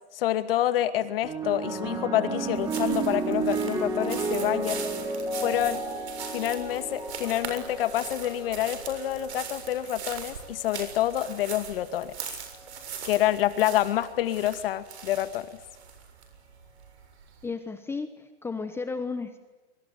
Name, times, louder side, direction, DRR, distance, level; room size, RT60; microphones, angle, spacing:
voice 1, 0.1-4.8 5.4-5.8 6.3-12.1 13.0-15.5, left 13 dB, 55° left, 11 dB, 2.2 m, -27 dB
sound 1, 1.2-9.8 10.7-11.1, right 3 dB, 10° right, 3.7 m, -32 dB
sound 2, 2.5-17.4, right 7 dB, 75° right, 7.1 m, -41 dB
voice 2, 17.4-19.4, left 4 dB, 5° left, 9 dB, 1.1 m, -34 dB
27.0 x 23.5 x 9.3 m, 1.2 s
supercardioid pair, 155°, 33 cm